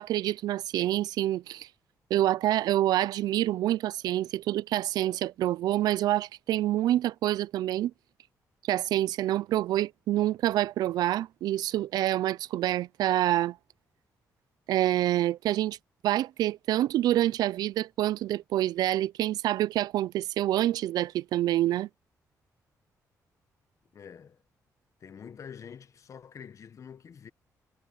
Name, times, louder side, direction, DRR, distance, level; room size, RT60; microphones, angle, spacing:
voice 1, 0.0-1.7 2.1-7.9 8.7-13.6 14.7-15.8 16.0-21.9, right 13 dB, 85° right, 0.4 m, -27 dB
voice 2, 23.9-24.4 25.0-27.3, left 7 dB, 50° left, 1.1 m, -46 dB
cardioid pair, 90°, 7 cm